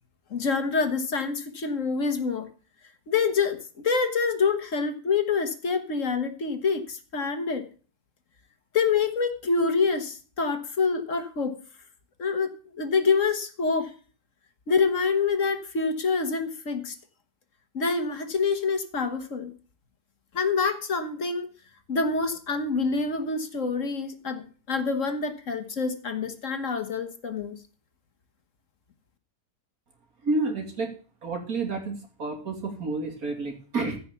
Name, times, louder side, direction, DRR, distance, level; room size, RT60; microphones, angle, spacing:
voice 1, 0.3-2.5 3.1-3.6 3.8-7.6 8.7-11.6 12.2-13.9 14.7-17.0 17.7-19.5 20.3-21.5 21.9-27.6, left 4 dB, 55° left, 8 dB, 1.7 m, -26 dB
voice 2, 30.2-30.9 31.2-34.0, right 3 dB, 65° right, 4 dB, 3.2 m, -30 dB
15.0 x 5.9 x 6.9 m, 0.39 s
omnidirectional pair, 1.7 m